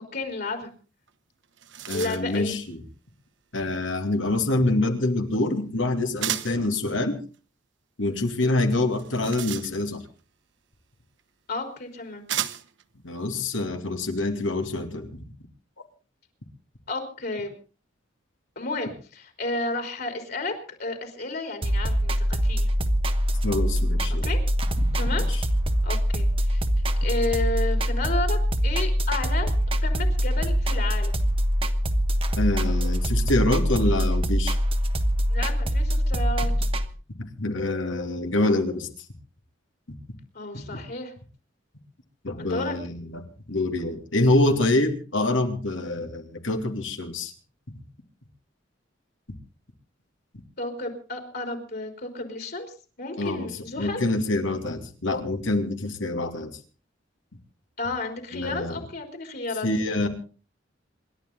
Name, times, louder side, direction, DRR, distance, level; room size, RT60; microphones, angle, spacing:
voice 1, 0.1-0.7 1.9-2.6 11.5-12.2 16.9-17.5 18.6-20.5 20.8-22.7 24.2-24.4 24.9-25.3 25.8-26.6 27.0-29.5 29.8-31.2 35.3-36.7 40.3-41.1 42.4-42.7 50.6-54.1 57.8-59.7, left 2 dB, 55° left, 5 dB, 3.8 m, -32 dB
sound 1, 1.1-1.2 1.4-2.4 6.2-6.7 8.9-10.1 11.2-11.3 12.3-12.8, right 11 dB, 70° right, 1.1 m, -33 dB
voice 2, 1.9-2.8 3.5-7.2 8.0-10.0 13.0-15.1 23.4-24.3 24.8-25.4 32.4-34.6 37.4-38.9 40.7-40.8 42.2-43.2 43.5-47.3 53.2-53.5 53.8-56.5 58.3-58.8 59.6-60.1, left 2 dB, 85° left, 5 dB, 2.8 m, -26 dB
sound 2, 21.6-36.8, equal, 30° right, 1.2 m, -24 dB
27.5 x 12.0 x 3.9 m, 0.37 s
head